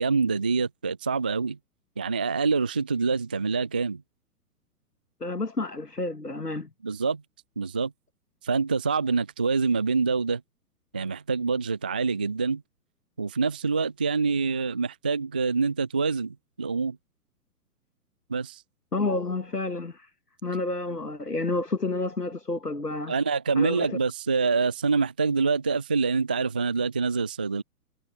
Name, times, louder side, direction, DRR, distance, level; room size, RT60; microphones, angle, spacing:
voice 1, 0.0-1.6 2.0-4.0 6.8-7.2 7.6-7.9 8.4-10.4 10.9-12.6 13.2-17.0 18.3-18.6 23.1-27.6, right 4 dB, 5° right, 0.4 m, -26 dB
voice 2, 5.2-6.7 18.9-20.1 20.4-23.1 23.6-24.0, left 2 dB, 85° left, 1.7 m, -30 dB
figure-of-eight pair, 120°, 46 cm